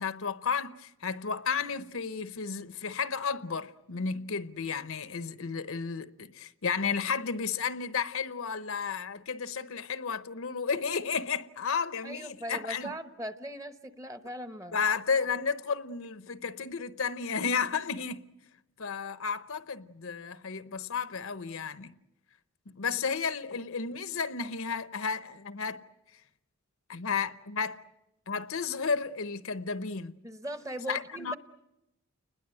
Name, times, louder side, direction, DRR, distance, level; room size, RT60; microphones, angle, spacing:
voice 1, 0.0-12.9 14.7-18.3 18.8-21.9 22.7-25.8 26.9-27.8 28.3-30.2 30.9-31.4, left 5 dB, 65° left, 0.8 m, -32 dB
voice 2, 12.0-14.8 22.9-23.0 30.2-31.4, right 1 dB, 15° right, 0.9 m, -39 dB
29.5 x 20.5 x 7.8 m
head